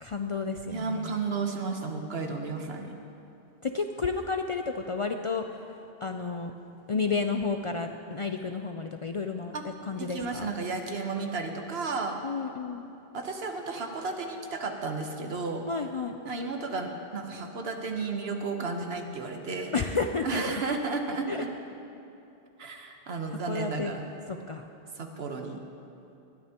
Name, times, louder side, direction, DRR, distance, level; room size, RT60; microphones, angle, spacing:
voice 1, 0.0-1.1 3.6-5.5 6.0-6.5 6.9-9.5 9.9-10.5 12.2-12.9 15.7-16.2 19.7-20.4 21.3-21.4 23.5-23.9 24.3-24.6, left 4 dB, 50° left, 5 dB, 0.4 m, -31 dB
voice 2, 0.7-2.9 9.5-9.6 10.0-12.2 13.1-15.6 16.2-19.7 20.2-21.5 22.6-24.1 25.0-25.6, right 4 dB, 80° right, 4 dB, 1.3 m, -33 dB
19.0 x 13.0 x 2.9 m, 2.8 s
omnidirectional pair, 1.0 m